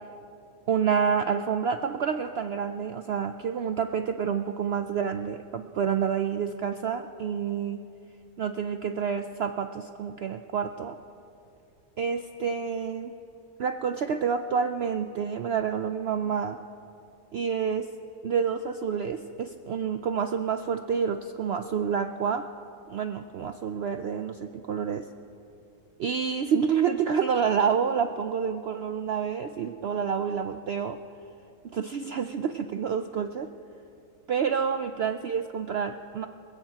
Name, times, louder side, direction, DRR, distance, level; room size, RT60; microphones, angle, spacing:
voice 1, 0.7-7.8 8.4-11.0 12.0-13.1 13.6-16.6 17.3-17.9 18.2-22.5 22.9-25.1 26.0-31.0 31.6-33.5 34.3-36.3, right 7 dB, 85° right, 7 dB, 0.5 m, -28 dB
26.5 x 16.5 x 2.9 m, 2.8 s
omnidirectional pair, 1.7 m